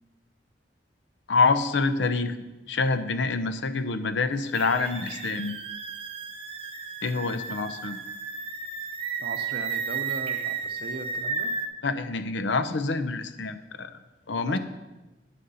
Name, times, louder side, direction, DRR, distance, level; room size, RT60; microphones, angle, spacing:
voice 1, 1.3-2.3 2.7-5.6 7.0-8.0 11.8-13.9 14.3-14.6, left 4 dB, 75° left, 11 dB, 0.6 m, -26 dB
sound 1, 4.5-11.7, right 5 dB, 30° right, 0.9 m, -33 dB
voice 2, 9.2-11.5 14.5-14.6, right 2 dB, 55° right, 8 dB, 0.8 m, -38 dB
9.5 x 6.5 x 5.5 m, 1.1 s
head